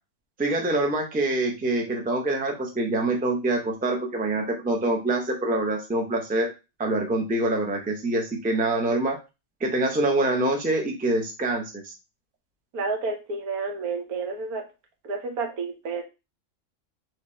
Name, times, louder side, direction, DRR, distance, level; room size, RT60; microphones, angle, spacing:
voice 1, 0.4-6.5 6.8-9.2 9.6-11.9, right 2 dB, 10° right, 2 dB, 0.5 m, -25 dB
voice 2, 12.7-14.6 15.0-16.0, right 4 dB, 80° right, 4 dB, 1.5 m, -30 dB
3.3 x 3.2 x 4.2 m, 0.27 s
omnidirectional pair, 1.5 m